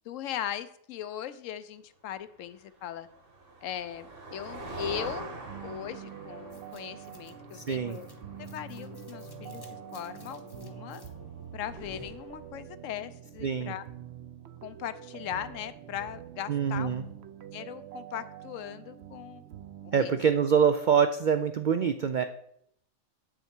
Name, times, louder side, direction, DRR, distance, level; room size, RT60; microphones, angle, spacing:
voice 1, 0.0-3.1 3.6-5.3 5.6-8.1 8.4-11.0 11.5-13.8 14.6-16.9 17.5-19.4 19.8-20.2, left 10 dB, 75° left, 13 dB, 0.9 m, -39 dB
Motor vehicle (road), 2.8-10.6, right 2 dB, 45° right, 1.5 m, -44 dB
sound 1, 5.5-20.3, right 11 dB, 60° right, 0.7 m, -46 dB
sound 2, 6.5-12.9, left 4 dB, 20° left, 0.7 m, -51 dB
voice 2, 7.5-8.0 13.4-13.7 16.5-17.0 19.9-22.2, right 7 dB, 85° right, 9 dB, 0.4 m, -25 dB
8.2 x 6.5 x 4.4 m, 0.71 s
omnidirectional pair, 1.4 m